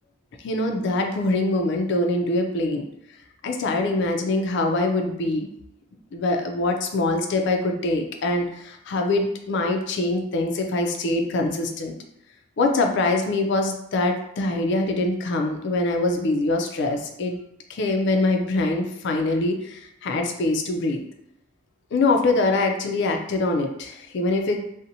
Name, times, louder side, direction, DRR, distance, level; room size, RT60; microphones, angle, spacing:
voice 1, 0.4-2.8 3.4-5.5 6.1-11.9 12.6-17.4 17.7-21.0 21.9-24.6, left 2 dB, 55° left, 4 dB, 0.3 m, -24 dB
2.6 x 2.1 x 2.6 m, 0.77 s
head